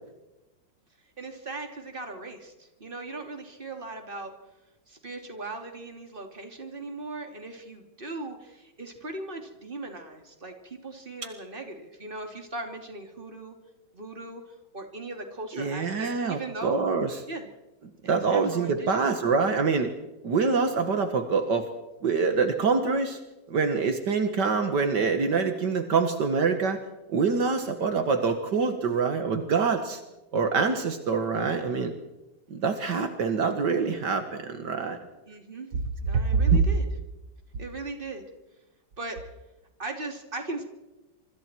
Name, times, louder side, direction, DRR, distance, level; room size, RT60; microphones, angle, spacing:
voice 1, 1.2-4.3 4.9-13.6 13.9-14.4 14.7-16.8 17.3-17.5 18.0-19.1 35.3-35.7 36.0-36.8 37.6-38.2 39.0-39.2 39.8-40.6, right 2 dB, 30° right, 4 dB, 3.3 m, -38 dB
voice 2, 15.5-17.2 18.1-19.9 20.2-21.7 22.0-23.2 23.5-26.8 27.1-30.0 30.3-31.9 32.5-35.0 36.1-36.6, right 5 dB, 70° right, 7 dB, 2.2 m, -25 dB
26.5 x 25.0 x 4.6 m, 1.0 s
omnidirectional pair, 1.9 m